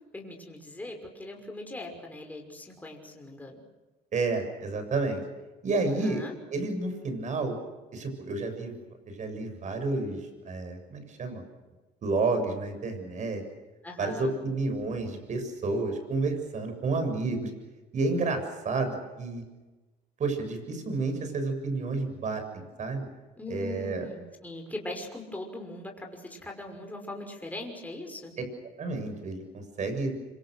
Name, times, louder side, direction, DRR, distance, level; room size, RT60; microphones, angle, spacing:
voice 1, 0.1-3.6 5.9-6.3 13.8-14.3 23.4-28.3, left 2 dB, 10° left, 1 dB, 5.8 m, -40 dB
voice 2, 4.1-5.2 5.6-6.2 6.5-7.6 7.9-8.7 9.1-10.2 10.5-11.4 12.0-13.4 14.0-17.5 17.9-19.4 20.2-23.1 23.5-24.0 28.8-30.2, right 3 dB, 45° right, 7 dB, 7.4 m, -30 dB
26.5 x 25.5 x 6.6 m, 1.2 s
cardioid pair, 110°, 17 cm